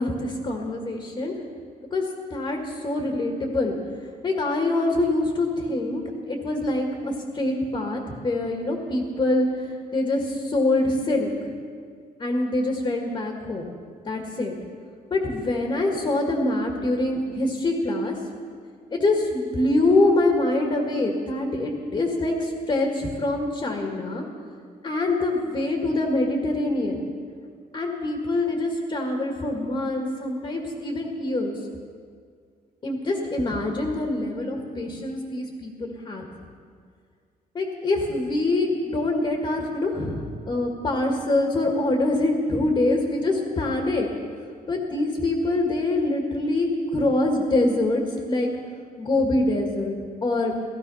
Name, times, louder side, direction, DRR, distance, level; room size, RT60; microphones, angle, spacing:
voice 1, 0.0-1.3 1.9-2.0 2.3-3.8 4.2-6.0 6.3-9.5 9.9-11.3 12.2-13.7 14.1-14.6 15.1-18.1 18.9-24.2 24.8-27.0 27.7-31.6 32.8-36.3 37.5-44.1 44.7-48.5 49.0-50.5, left 2 dB, 30° left, 1 dB, 1.9 m, -24 dB
17.0 x 14.5 x 5.7 m, 2.1 s
cardioid pair, 155°, 16 cm